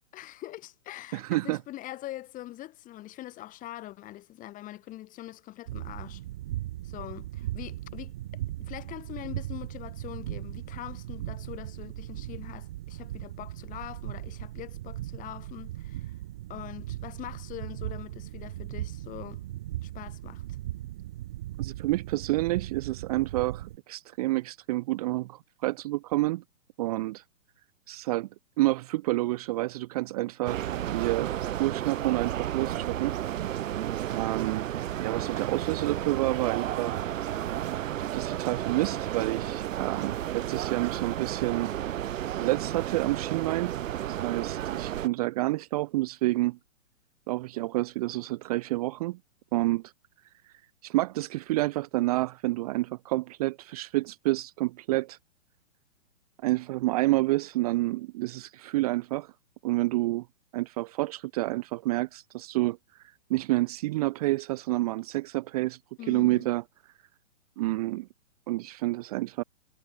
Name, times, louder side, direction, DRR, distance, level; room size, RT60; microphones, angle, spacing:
voice 1, 0.1-6.2 6.8-8.1 8.6-16.1 16.5-19.4 19.8-20.4 66.0-66.5, left 15 dB, 20° left, 1.7 m, -43 dB
voice 2, 1.1-1.6 21.6-26.4 26.8-27.2 27.9-28.3 28.6-31.3 31.6-33.1 34.1-34.6 35.0-37.0 38.1-41.7 42.0-43.8 44.1-46.6 47.3-49.2 49.5-49.9 50.8-55.2 56.4-59.3 59.6-60.3 60.5-62.8 63.3-65.8 66.1-66.6 67.6-68.1 68.5-69.4, right 19 dB, 30° right, 0.7 m, -29 dB
sound 1, 5.7-23.8, right 14 dB, 5° right, 0.3 m, -38 dB
sound 2, 30.4-45.1, right 12 dB, 70° right, 0.7 m, -32 dB
hypercardioid pair, 140°, 40 cm